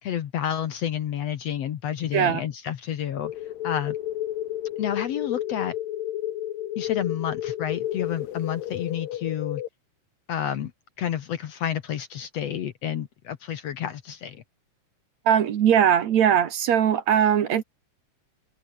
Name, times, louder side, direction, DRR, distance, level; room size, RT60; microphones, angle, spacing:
voice 1, 0.0-3.3 3.6-4.0 4.8-5.7 6.8-9.6 10.3-10.7 11.0-14.4, left 9 dB, 60° left, 2.0 m, -30 dB
sound 1, 3.2-9.7, left 13 dB, 85° left, 3.0 m, -31 dB
voice 2, 15.3-17.6, right 9 dB, 60° right, 2.5 m, -20 dB
omnidirectional pair, 3.8 m